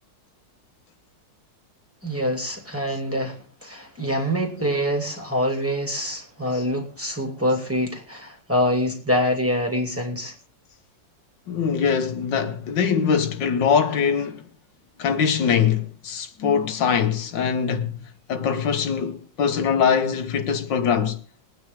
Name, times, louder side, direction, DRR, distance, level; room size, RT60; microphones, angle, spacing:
voice 1, 2.0-10.3, equal, 5° right, 2.5 m, -25 dB
voice 2, 11.5-14.5 15.0-18.0 18.3-21.2, left 7 dB, 80° left, 1.8 m, -22 dB
22.0 x 9.3 x 3.5 m
omnidirectional pair, 2.0 m